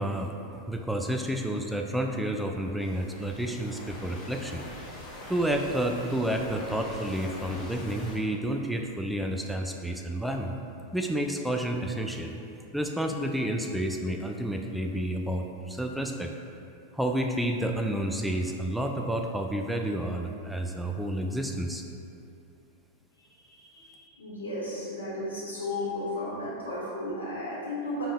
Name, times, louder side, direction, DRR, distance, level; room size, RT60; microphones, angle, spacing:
voice 1, 0.0-4.6 5.3-10.5 10.9-12.4 12.7-16.3 16.9-21.9, right 1 dB, 5° right, 2 dB, 0.3 m, -30 dB
sound 1, 2.8-8.2, left 1 dB, 30° left, 0.8 m, -43 dB
voice 2, 23.4-28.1, left 1 dB, 70° left, -8 dB, 1.3 m, -34 dB
5.1 x 3.4 x 2.2 m, 2.7 s
figure-of-eight pair, 90°, 0 cm